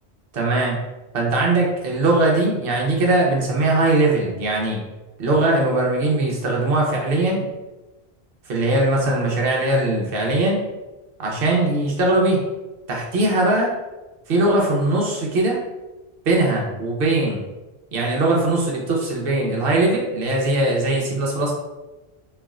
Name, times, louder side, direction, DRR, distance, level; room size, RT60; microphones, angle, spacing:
voice 1, 0.3-0.8 1.1-4.8 5.2-7.4 8.5-10.6 11.2-12.4 12.9-13.7 14.3-15.6 16.3-17.4 17.9-21.5, right 2 dB, 65° right, -2 dB, 0.9 m, -20 dB
3.3 x 2.4 x 2.3 m, 1.1 s
omnidirectional pair, 1.1 m